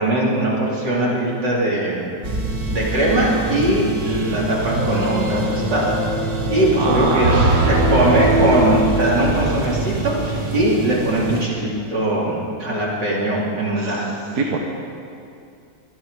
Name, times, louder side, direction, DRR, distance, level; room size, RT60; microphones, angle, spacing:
voice 1, 0.0-2.1 2.7-6.0 6.5-7.3 7.7-14.1 14.3-14.4, right 1 dB, 80° right, -5 dB, 3.7 m, -20 dB
sound 1, 2.2-11.5, right 1 dB, 30° right, 0.8 m, -23 dB
voice 2, 6.8-8.8 13.8-14.0 14.3-14.6, right 4 dB, 65° right, 1 dB, 1.6 m, -23 dB
24.5 x 10.5 x 4.8 m, 2.5 s
omnidirectional pair, 1.9 m